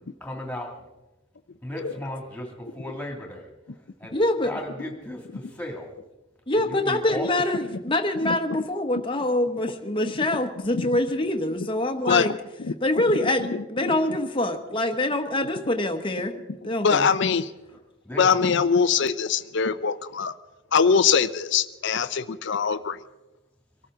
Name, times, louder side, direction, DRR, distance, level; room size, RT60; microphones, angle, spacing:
voice 1, 0.2-0.8 1.6-3.5 4.0-5.9 6.5-7.3 18.0-18.4, left 1 dB, 5° left, 1 dB, 2.5 m, -36 dB
voice 2, 4.1-4.5 6.5-12.3 12.8-16.3 16.6-17.1, left 1 dB, 25° left, 5 dB, 1.1 m, -25 dB
voice 3, 8.2-8.6 10.7-10.9 12.0-12.3 12.6-12.7 13.2-13.9 16.8-17.5 18.2-20.3 20.7-23.0, left 6 dB, 60° left, 12 dB, 0.6 m, -23 dB
24.0 x 13.5 x 3.8 m, 1.0 s
head